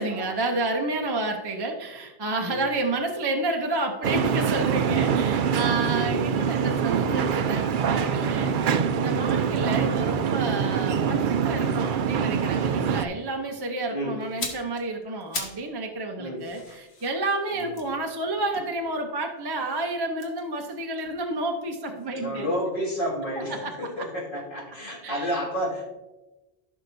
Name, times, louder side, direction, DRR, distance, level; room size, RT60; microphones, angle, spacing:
voice 1, 0.0-22.5 23.4-24.1 25.0-25.3, right 2 dB, 25° right, 2 dB, 0.8 m, -30 dB
sound 1, 4.0-13.1, right 7 dB, 60° right, 0.6 m, -24 dB
voice 2, 5.9-6.3 13.9-14.2 16.2-16.4 17.6-17.7 22.1-25.9, equal, 50° left, -5 dB, 2.5 m, -30 dB
sound 2, 14.2-15.7 16.0-19.3 20.1-22.1 22.4-22.6, left 3 dB, 85° left, 1.6 m, -40 dB
15.5 x 5.9 x 2.7 m, 1.1 s
omnidirectional pair, 1.1 m